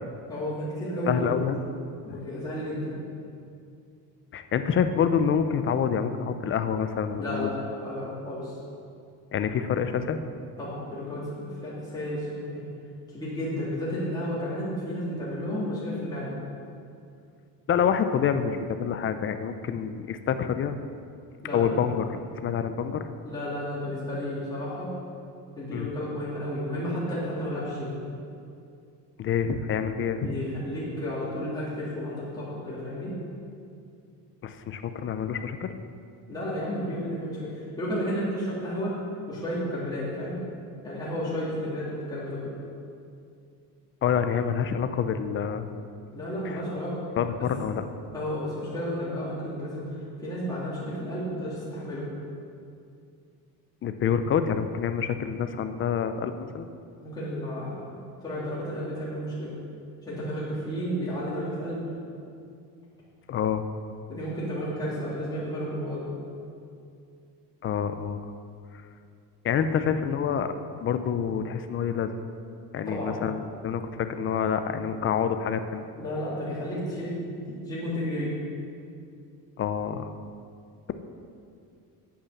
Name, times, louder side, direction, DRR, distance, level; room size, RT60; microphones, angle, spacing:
voice 1, 0.3-1.4 2.0-2.9 7.2-8.6 10.6-12.6 13.1-16.3 21.4-21.7 23.2-24.9 25.5-27.9 30.0-33.1 36.3-37.5 37.8-39.0 39.3-40.4 40.8-42.5 46.1-47.0 48.1-49.9 50.2-52.1 57.0-57.8 58.2-59.5 60.1-61.8 64.1-66.1 72.8-73.1 75.9-78.3, equal, 10° left, -9 dB, 3.1 m, -32 dB
voice 2, 1.1-1.6 4.3-7.5 9.3-10.2 17.7-20.7 21.5-23.0 25.7-25.9 29.2-30.3 34.4-35.7 44.0-45.8 46.4-46.6 47.2-47.8 53.8-56.7 63.3-63.6 67.6-68.3 69.4-70.5 70.8-72.1 72.7-75.8 79.6-80.1, left 7 dB, 35° left, 9 dB, 0.6 m, -27 dB
8.6 x 8.3 x 7.1 m, 2.4 s
cardioid pair, 150°, 38 cm